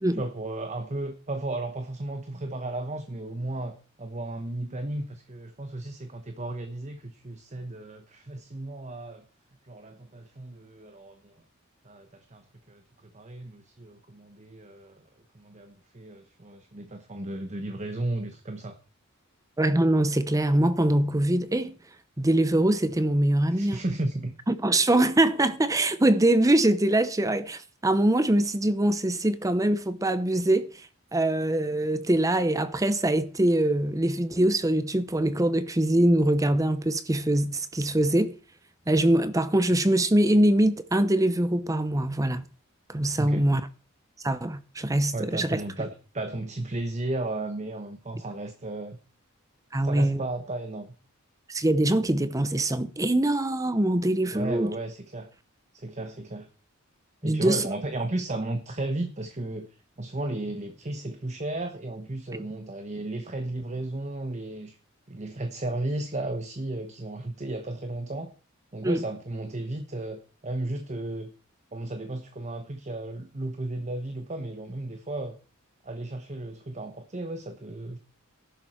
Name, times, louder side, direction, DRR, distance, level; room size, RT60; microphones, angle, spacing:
voice 1, 0.2-9.2 9.6-11.3 11.8-12.4 12.7-12.8 13.1-15.0 15.3-18.8 23.5-24.3 43.2-43.4 45.1-49.0 49.8-50.9 54.3-55.3 55.7-56.5 57.2-59.7 60.0-64.8 65.1-68.3 68.7-71.3 71.7-75.4 75.8-78.0, right 2 dB, 35° right, 1.2 m, -34 dB
voice 2, 19.6-21.7 22.2-23.8 24.5-38.3 38.9-42.4 42.9-43.6 44.2-45.6 49.7-50.2 51.5-54.7 57.2-57.6 62.3-62.4 68.8-69.0, right 1 dB, 15° right, 0.7 m, -23 dB
14.0 x 11.5 x 4.4 m
head